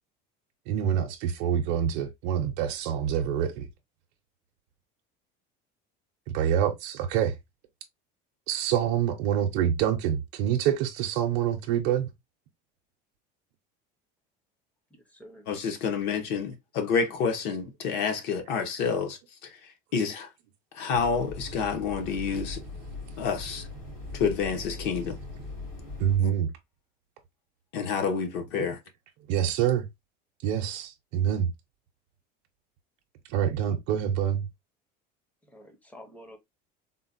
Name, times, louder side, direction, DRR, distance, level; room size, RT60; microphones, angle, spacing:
voice 1, 0.7-3.7 6.3-7.4 8.5-12.1 26.0-26.5 29.3-29.9 30.4-31.5 33.3-34.5, right 9 dB, 65° right, 0.6 m, -26 dB
voice 2, 14.9-15.5 35.5-36.4, equal, 5° left, 0.5 m, -49 dB
voice 3, 15.5-20.3 20.7-22.6 23.2-23.7 24.1-25.2 26.2-26.3 27.7-28.8, left 6 dB, 55° left, 0.7 m, -29 dB
sound 1, 20.9-26.2, left 2 dB, 85° left, 1.8 m, -40 dB
3.7 x 2.1 x 2.4 m
cardioid pair, 165°, 21 cm